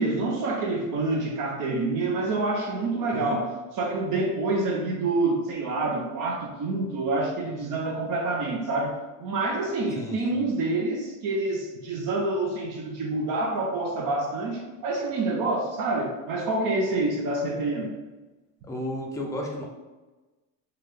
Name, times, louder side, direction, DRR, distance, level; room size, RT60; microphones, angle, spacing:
voice 1, 0.0-17.9, right 2 dB, 50° right, 0 dB, 0.6 m, -27 dB
voice 2, 18.7-19.6, left 1 dB, 10° left, -1 dB, 0.4 m, -32 dB
3.7 x 2.2 x 3.2 m, 1.2 s
cardioid pair, 130°, 42 cm